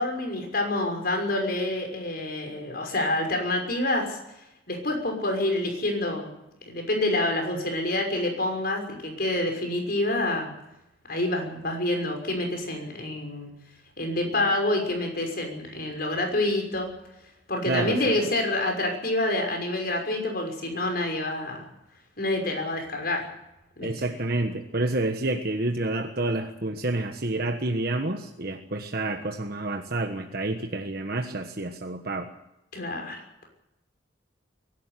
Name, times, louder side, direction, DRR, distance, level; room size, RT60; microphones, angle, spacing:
voice 1, 0.0-4.2 4.7-6.3 6.7-10.5 11.1-13.5 14.0-16.9 17.5-21.7 22.2-23.3 23.8-23.9 32.7-33.2, left 1 dB, 55° left, 3 dB, 6.0 m, -27 dB
voice 2, 17.6-18.2 23.8-32.3, right 2 dB, 55° right, 5 dB, 1.4 m, -29 dB
23.5 x 12.0 x 9.8 m, 0.88 s
head